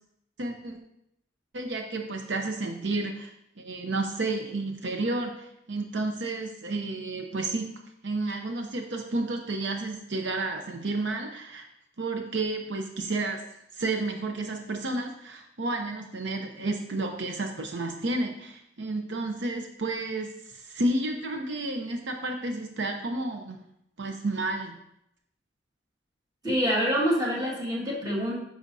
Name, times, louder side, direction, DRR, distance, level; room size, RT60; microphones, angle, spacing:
voice 1, 0.4-0.8 1.5-7.7 8.0-11.7 12.0-13.4 13.7-23.6 24.0-24.8, right 2 dB, 75° right, 4 dB, 0.7 m, -31 dB
voice 2, 26.4-28.4, equal, 20° right, -3 dB, 1.9 m, -26 dB
10.0 x 6.4 x 2.7 m, 0.79 s
head